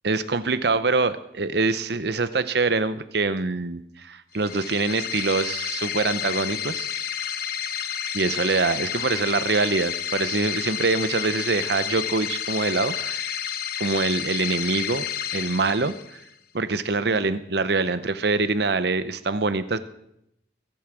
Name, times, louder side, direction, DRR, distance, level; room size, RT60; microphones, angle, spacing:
voice 1, 0.0-6.9 8.1-13.4 13.8-15.0 15.3-16.2 16.5-19.8, right 3 dB, 60° right, 13 dB, 0.8 m, -24 dB
sound 1, 4.3-16.3, left 9 dB, 50° left, 0.9 m, -30 dB
22.0 x 8.6 x 6.1 m, 0.82 s
head